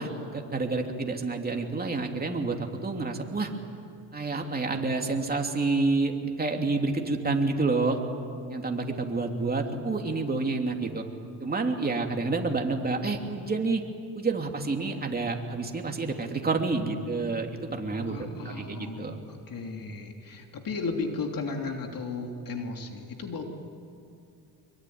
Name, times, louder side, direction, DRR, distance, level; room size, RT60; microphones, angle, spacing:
voice 1, 0.0-3.5 4.1-8.0 8.5-11.0 11.4-13.8 14.1-19.2, right 3 dB, 20° right, 2 dB, 3.1 m, -29 dB
voice 2, 18.1-23.4, left 4 dB, 50° left, 3 dB, 3.1 m, -35 dB
25.0 x 23.0 x 9.7 m, 2.5 s
cardioid pair, 100°, 43 cm